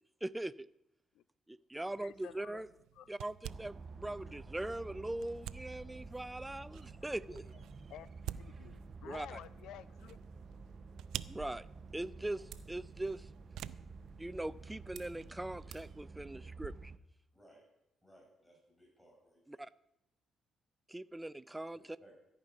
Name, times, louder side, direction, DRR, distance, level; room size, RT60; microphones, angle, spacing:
voice 1, 0.2-0.7 1.5-2.7 3.1-7.5 9.0-9.4 11.3-11.7 11.9-13.3 14.2-16.9 19.5-19.7 20.9-22.0, right 1 dB, 10° right, 17 dB, 0.4 m, -41 dB
sound 1, 1.9-15.4, right 12 dB, 85° right, 0.3 m, -51 dB
voice 2, 2.0-2.6 3.0-3.1 4.0-4.4 7.3-7.4 7.9-8.1 8.3-10.2, left 11 dB, 85° left, 18 dB, 0.5 m, -52 dB
sound 2, 3.5-17.0, right 4 dB, 40° right, 0.7 m, -51 dB
sound 3, 11.2-16.7, right 7 dB, 70° right, 1.1 m, -57 dB
voice 3, 18.0-19.6 21.7-22.1, right 1 dB, 5° left, -3 dB, 6.3 m, -63 dB
14.0 x 5.3 x 9.3 m, 0.85 s
cardioid pair, 90°, 0 cm